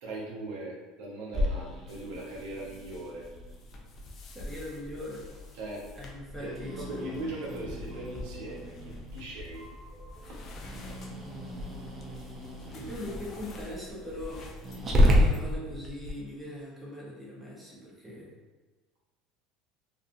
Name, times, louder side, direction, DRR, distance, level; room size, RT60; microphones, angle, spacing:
voice 1, 0.0-3.3 5.5-5.9 6.4-9.7 10.3-10.4, right 1 dB, 75° right, -3 dB, 0.7 m, -39 dB
Growling, 1.3-16.1, left 1 dB, 30° right, 0.5 m, -32 dB
sound 1, 1.9-15.5, left 1 dB, 40° left, 0.4 m, -50 dB
voice 2, 4.3-5.2 5.9-7.1 12.7-18.3, left 1 dB, 5° right, -6 dB, 0.8 m, -41 dB
sound 2, 6.3-13.2, equal, 15° left, 1.3 m, -52 dB
2.7 x 2.4 x 2.5 m, 1.2 s
supercardioid pair, 120°, 0 cm